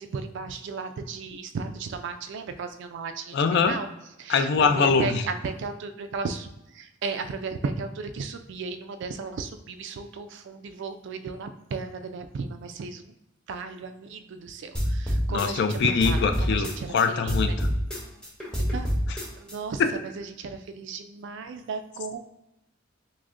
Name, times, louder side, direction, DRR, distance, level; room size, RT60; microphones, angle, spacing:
voice 1, 0.0-3.4 3.7-3.9 4.2-4.5 4.8-6.5 6.7-13.1 13.5-17.0 17.2-17.6 18.6-18.9 19.4-19.8 20.2-22.2, right 4 dB, 60° right, 8 dB, 0.3 m, -35 dB
voice 2, 3.3-3.8 4.3-5.2 15.3-17.7 19.1-19.2, left 5 dB, 55° left, 7 dB, 0.4 m, -23 dB
sound 1, 14.7-17.0 17.3-19.5, equal, 5° left, 0.6 m, -27 dB
6.0 x 2.1 x 2.5 m, 0.91 s
head